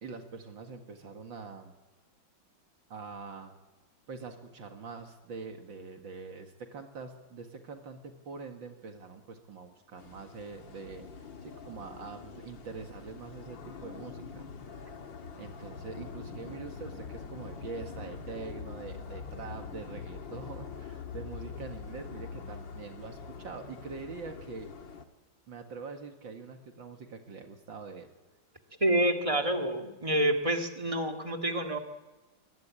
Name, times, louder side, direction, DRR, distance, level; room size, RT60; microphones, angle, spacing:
voice 1, 0.0-1.7 2.9-3.5 4.1-11.1 11.4-14.9 15.4-24.7 25.5-28.1, right 4 dB, 75° right, 5 dB, 2.6 m, -44 dB
sound 1, 10.0-25.0, left 6 dB, 70° left, 2.3 m, -44 dB
voice 2, 28.8-31.8, right 1 dB, 15° right, 4 dB, 2.0 m, -28 dB
24.0 x 20.5 x 8.9 m, 1.2 s
omnidirectional pair, 2.1 m